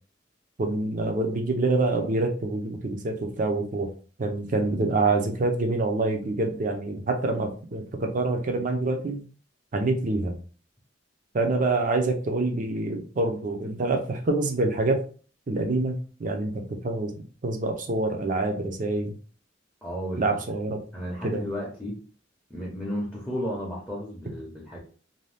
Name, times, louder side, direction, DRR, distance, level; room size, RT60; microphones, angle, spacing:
voice 1, 0.6-3.9 4.2-9.2 9.7-10.4 11.3-15.0 15.5-17.1 17.4-19.1 20.2-20.8 21.2-21.5, right 2 dB, 45° right, 4 dB, 0.5 m, -26 dB
voice 2, 19.8-20.4 20.9-22.0 22.5-24.8, equal, 5° left, -5 dB, 0.7 m, -33 dB
2.6 x 2.2 x 3.3 m, 0.40 s
head